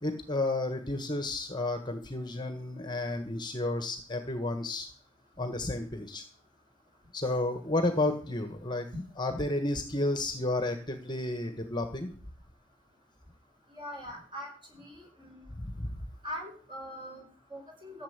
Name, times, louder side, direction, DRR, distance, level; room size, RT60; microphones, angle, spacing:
voice 1, 0.0-4.9 5.4-6.2 7.1-8.9 9.2-12.1 15.6-16.0, left 2 dB, 25° left, 7 dB, 1.5 m, -32 dB
voice 2, 13.7-15.4 16.2-18.0, equal, 25° right, 1 dB, 4.9 m, -42 dB
15.0 x 7.5 x 8.2 m, 0.44 s
head